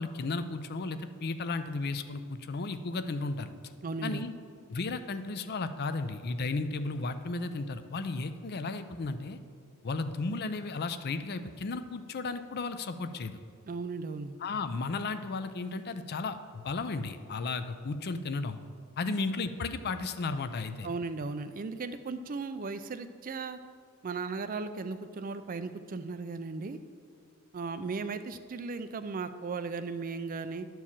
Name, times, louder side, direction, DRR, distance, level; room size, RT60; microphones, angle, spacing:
voice 1, 0.0-3.5 4.0-4.3 4.7-9.4 9.8-13.4 14.4-18.6 19.0-20.9, left 3 dB, 45° left, 10 dB, 0.5 m, -34 dB
voice 2, 3.8-4.2 13.7-14.3 20.8-23.6 24.0-26.8 27.5-30.7, right 4 dB, 40° right, 11 dB, 0.4 m, -36 dB
11.0 x 4.6 x 7.2 m, 2.1 s
head